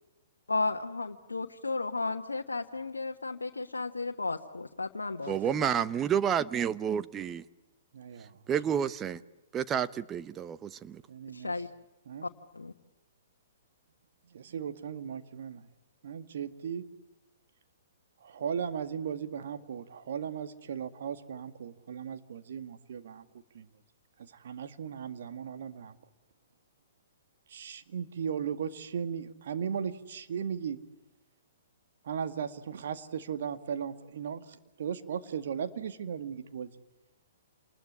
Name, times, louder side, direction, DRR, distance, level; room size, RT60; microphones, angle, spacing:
voice 1, 0.5-5.7 11.3-11.7 12.2-12.7, left 3 dB, 90° left, 3 dB, 1.3 m, -34 dB
voice 2, 5.3-7.4 8.5-9.2 9.5-11.0, right 8 dB, 20° right, 14 dB, 1.0 m, -30 dB
voice 3, 7.9-8.4 11.1-11.5 12.1-12.3 14.3-15.7 16.0-16.9 18.2-23.3 23.5-23.7 24.2-26.0 27.5-30.8 32.0-36.7, right 7 dB, 65° right, 9 dB, 2.0 m, -37 dB
28.5 x 20.5 x 9.8 m, 1.0 s
hypercardioid pair, 120°, 0 cm